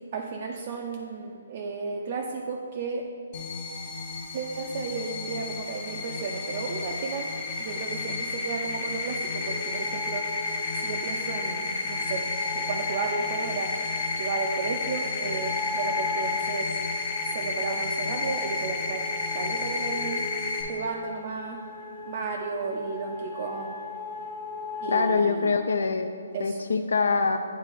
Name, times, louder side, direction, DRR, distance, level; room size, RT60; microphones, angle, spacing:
voice 1, 0.1-3.0 4.3-10.3 10.7-13.7 14.2-16.8 17.2-19.1 19.3-20.2 20.6-23.8 24.8-25.5 26.3-26.6, right 4 dB, 30° right, 1 dB, 0.3 m, -33 dB
sound 1, 3.3-20.6, left 3 dB, 25° left, 0.7 m, -31 dB
sound 2, 9.4-25.1, left 3 dB, 40° left, 1.4 m, -37 dB
voice 2, 24.9-26.1 26.4-27.4, left 4 dB, 80° left, 7 dB, 0.3 m, -24 dB
9.1 x 3.6 x 3.4 m, 2.2 s
hypercardioid pair, 175°, 0 cm